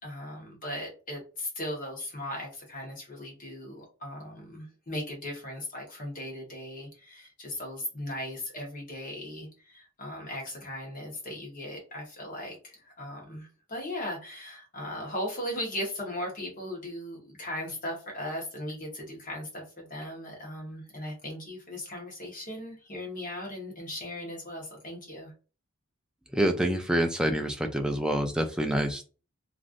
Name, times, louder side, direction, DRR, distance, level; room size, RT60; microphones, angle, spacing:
voice 1, 0.0-25.3, left 1 dB, 35° left, -1 dB, 1.2 m, -38 dB
voice 2, 26.3-29.0, right 1 dB, 5° right, 4 dB, 0.4 m, -27 dB
3.1 x 2.5 x 2.5 m, 0.35 s
head